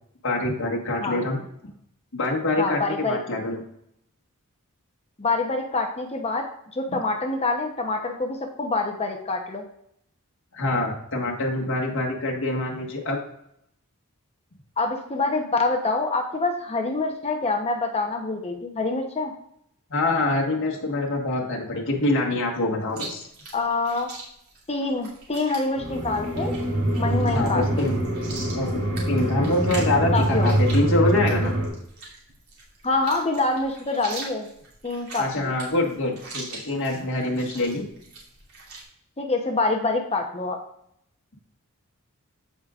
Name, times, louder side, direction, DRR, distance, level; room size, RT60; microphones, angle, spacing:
voice 1, 0.2-1.4 2.1-3.6 10.5-13.2 19.9-23.2 27.3-27.9 28.5-28.8 29.1-31.6 35.2-37.8, left 2 dB, 60° left, -2 dB, 1.5 m, -25 dB
voice 2, 2.6-3.2 5.2-6.5 6.7-9.6 14.8-19.3 23.5-24.1 24.7-26.5 27.0-27.9 30.1-30.5 32.8-34.5 34.8-35.5 39.2-40.6, left 3 dB, 30° left, 3 dB, 0.8 m, -26 dB
Chewing mastication, 22.9-38.8, right 3 dB, 90° right, 2.8 m, -42 dB
sound 1, 25.8-31.7, right 1 dB, 60° right, 2.2 m, -24 dB
14.5 x 5.0 x 2.4 m, 0.73 s
head